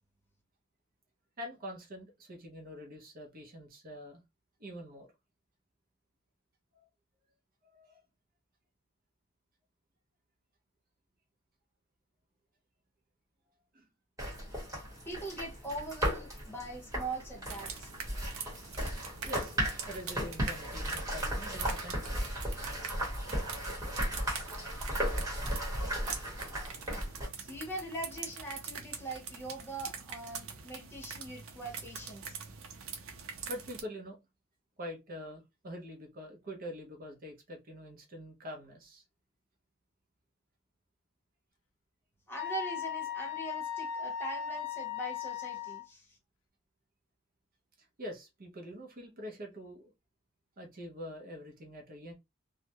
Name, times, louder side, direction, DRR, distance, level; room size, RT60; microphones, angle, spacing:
voice 1, 1.4-4.2 4.6-5.1 6.7-6.9 7.7-8.0 13.7-13.9 18.2-18.5 19.3-19.5 19.9-22.2 33.5-34.2 34.8-39.0 47.8-49.9 50.6-52.1, equal, 45° right, 0.6 m, -45 dB
sound 1, 14.2-27.3, equal, 15° right, 1.1 m, -36 dB
voice 2, 15.1-17.9 27.4-32.4 42.3-46.2, right 2 dB, 10° left, 0.8 m, -42 dB
sound 2, 17.5-33.8, right 6 dB, 90° right, 0.5 m, -44 dB
Wind instrument woodwind instrument, 42.4-45.9, left 9 dB, 65° left, 0.4 m, -37 dB
2.3 x 2.0 x 2.8 m
head